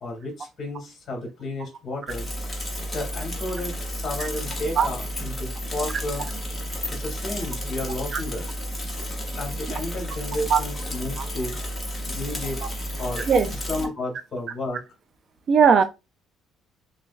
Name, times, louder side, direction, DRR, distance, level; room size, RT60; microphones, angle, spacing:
voice 1, 0.0-2.3 2.9-6.3 6.9-8.5 9.4-11.6 12.1-12.6 13.0-13.3 13.7-14.8, left 1 dB, 35° left, 1.7 m, -32 dB
Bicycle / Mechanisms, 2.1-13.9, equal, 10° left, 0.9 m, -32 dB
voice 2, 15.5-15.8, right 6 dB, 40° right, 0.3 m, -18 dB
6.2 x 2.1 x 2.3 m
cardioid pair, 170°, 0 cm